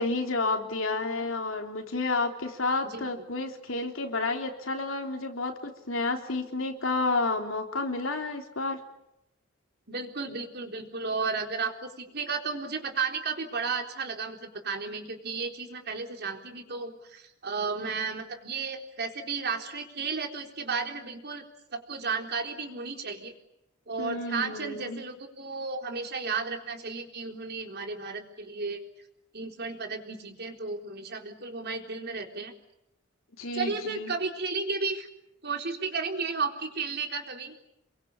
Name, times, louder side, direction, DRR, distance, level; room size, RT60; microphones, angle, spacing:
voice 1, 0.0-8.8 24.0-25.0 33.4-34.1, left 3 dB, 70° left, 4 dB, 3.5 m, -30 dB
voice 2, 9.9-21.5 21.7-23.3 23.9-28.8 29.3-32.5 33.5-35.1 35.4-37.5, right 4 dB, 55° right, 4 dB, 3.9 m, -33 dB
28.5 x 23.0 x 8.5 m, 0.83 s
head